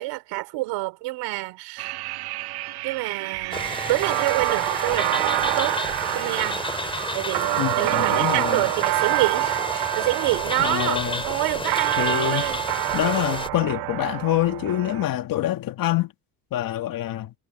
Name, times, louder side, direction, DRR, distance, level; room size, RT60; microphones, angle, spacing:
voice 1, 0.0-2.0 2.8-5.8 6.1-12.6, right 20 dB, 85° right, 4.4 m, -28 dB
sound 1, 1.8-15.0, right 19 dB, 65° right, 0.6 m, -27 dB
sound 2, 3.5-13.5, left 2 dB, 10° left, 6.1 m, -31 dB
voice 2, 7.6-8.6 10.6-11.2 12.0-12.5 12.9-16.1 16.5-17.3, left 13 dB, 55° left, 1.6 m, -25 dB
cardioid pair, 110°, 42 cm